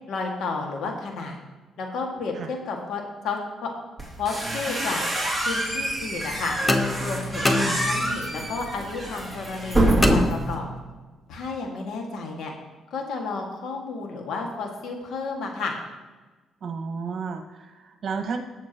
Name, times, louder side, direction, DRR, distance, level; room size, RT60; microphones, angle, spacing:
voice 1, 0.1-1.4 1.8-3.7 4.2-5.0 5.4-6.5 7.0-10.7 11.3-12.5 12.9-15.7, left 4 dB, 75° left, 1 dB, 2.0 m, -32 dB
sound 1, 4.0-10.5, right 1 dB, ahead, 2.7 m, -26 dB
sound 2, 6.7-8.3 10.0-11.0, left 2 dB, 20° left, 1.0 m, -26 dB
voice 2, 7.4-7.8 16.6-18.4, right 5 dB, 55° right, 6 dB, 1.5 m, -32 dB
18.0 x 7.3 x 3.0 m, 1.2 s
cardioid pair, 90°, 0 cm